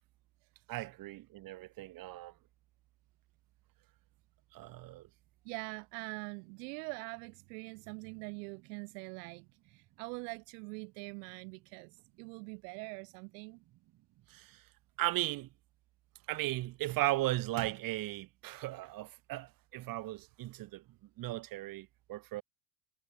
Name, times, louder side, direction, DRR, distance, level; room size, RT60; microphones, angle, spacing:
voice 1, 0.7-2.3 4.5-5.1 14.3-14.6 15.0-15.5 16.3-20.8 21.2-22.4, right 16 dB, 45° right, 1.4 m, -36 dB
voice 2, 5.4-11.9 12.2-13.6, right 35 dB, 70° right, 2.4 m, -44 dB
supercardioid pair, 115°, 49 cm